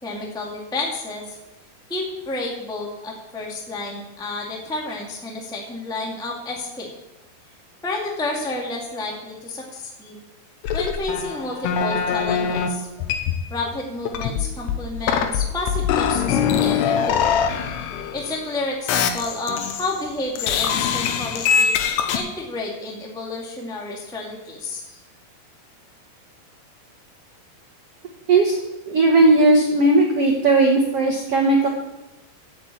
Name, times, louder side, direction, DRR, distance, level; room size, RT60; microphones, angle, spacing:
voice 1, 0.0-1.4 1.9-6.9 7.8-10.1 10.7-12.9 13.5-17.4 18.1-21.7 22.1-25.0, left 2 dB, ahead, -1 dB, 1.1 m, -30 dB
sound 1, 10.6-12.7 13.0-13.7 14.1-18.5 18.9-20.0 20.4-22.2, left 7 dB, 80° left, 3.0 m, -23 dB
voice 2, 28.3-28.6 28.9-31.7, right 2 dB, 75° right, 1 dB, 1.3 m, -17 dB
9.4 x 8.6 x 8.5 m, 1.0 s
omnidirectional pair, 4.8 m